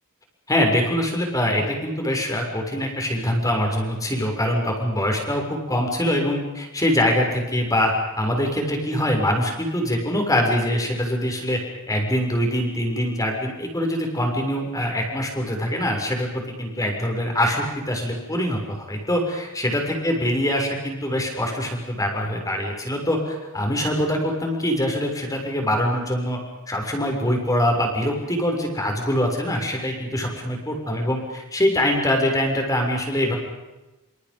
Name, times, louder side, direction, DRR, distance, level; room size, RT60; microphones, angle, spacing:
voice 1, 0.5-11.6 11.9-26.4 26.7-33.4, left 1 dB, 15° left, 2 dB, 6.8 m, -24 dB
29.5 x 28.0 x 5.5 m, 1.1 s
head